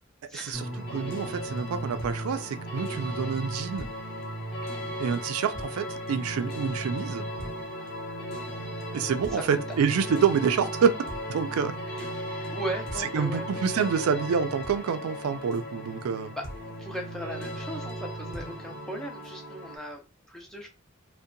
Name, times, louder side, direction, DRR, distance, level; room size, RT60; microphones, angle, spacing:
voice 1, 0.3-0.7 9.3-9.6 11.9-12.0 12.5-13.6 16.4-16.5 16.8-20.7, right 1 dB, ahead, 0.4 m, -37 dB
sound 1, 0.5-19.8, equal, 45° left, 0.7 m, -36 dB
voice 2, 0.9-3.9 5.0-7.3 8.9-10.9 11.3-11.7 13.1-16.3, right 6 dB, 90° right, 0.4 m, -27 dB
2.7 x 2.1 x 2.4 m
head